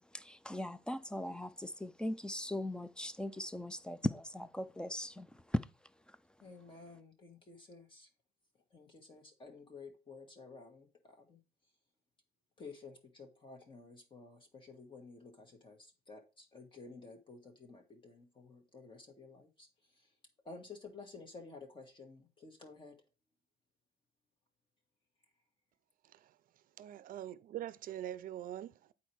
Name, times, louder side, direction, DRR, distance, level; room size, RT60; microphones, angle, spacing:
voice 1, 0.1-5.3, left 1 dB, 5° left, 0.5 m, -39 dB
voice 2, 6.4-8.1 8.7-11.4 12.6-20.1 20.4-23.0, left 4 dB, 30° left, 1.4 m, -53 dB
voice 3, 26.0-26.4 26.8-28.9, right 12 dB, 55° right, 0.5 m, -44 dB
8.3 x 4.3 x 4.5 m
cardioid pair, 110°, 17 cm